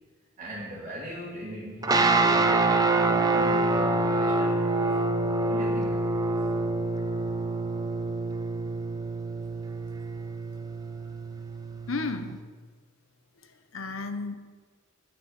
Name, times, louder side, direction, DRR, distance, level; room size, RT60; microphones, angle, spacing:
voice 1, 0.4-4.6 5.5-6.1, equal, 40° right, -5 dB, 1.7 m, -39 dB
sound 1, 1.8-12.3, right 2 dB, 20° right, 0.6 m, -26 dB
voice 2, 11.9-12.5 13.4-14.3, left 3 dB, 75° left, 8 dB, 0.9 m, -33 dB
8.4 x 6.3 x 7.3 m, 1.4 s
head